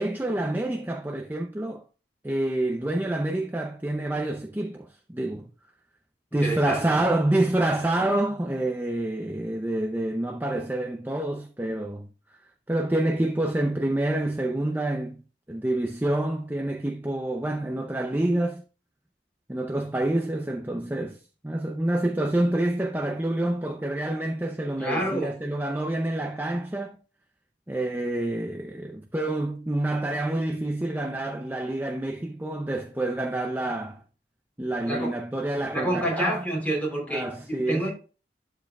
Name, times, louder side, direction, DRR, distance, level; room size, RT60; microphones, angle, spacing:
voice 1, 0.0-1.8 2.2-4.8 5.1-5.5 6.3-12.1 12.7-15.2 15.5-18.6 19.5-21.2 21.4-27.0 27.7-34.0 34.6-36.4 37.1-37.9, right 1 dB, 10° right, 0.6 m, -27 dB
voice 2, 6.4-6.8 24.8-25.3 34.9-35.1 35.7-37.9, right 1 dB, 10° left, 3.6 m, -28 dB
12.0 x 4.6 x 2.4 m
head